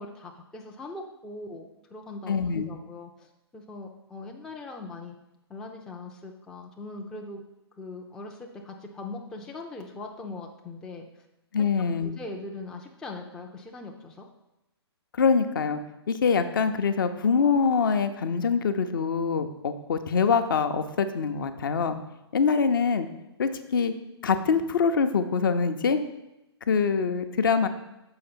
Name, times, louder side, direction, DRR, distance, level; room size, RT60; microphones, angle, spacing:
voice 1, 0.0-5.2 5.5-7.4 7.8-11.2 12.0-14.3, left 2 dB, 5° left, 1 dB, 0.4 m, -41 dB
voice 2, 2.3-2.7 11.5-12.1 15.1-15.8 16.1-22.0 22.3-23.1 23.4-23.9 24.2-26.0 26.7-27.7, left 5 dB, 50° left, 9 dB, 0.6 m, -24 dB
6.5 x 4.9 x 4.3 m, 0.92 s
figure-of-eight pair, 125°, 14 cm